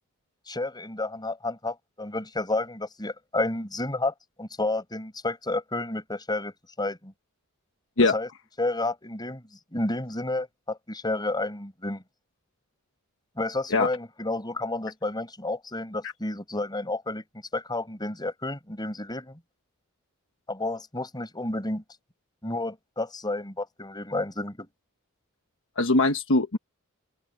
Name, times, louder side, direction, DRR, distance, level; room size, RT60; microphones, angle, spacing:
voice 1, 0.5-7.1 8.0-8.3 8.6-9.4 9.7-12.0 13.4-17.2 17.5-19.4 20.5-21.8 22.4-24.7, left 2 dB, 20° left, 5.6 m, -31 dB
voice 2, 25.8-26.6, left 2 dB, 60° left, 1.3 m, -21 dB
open air
head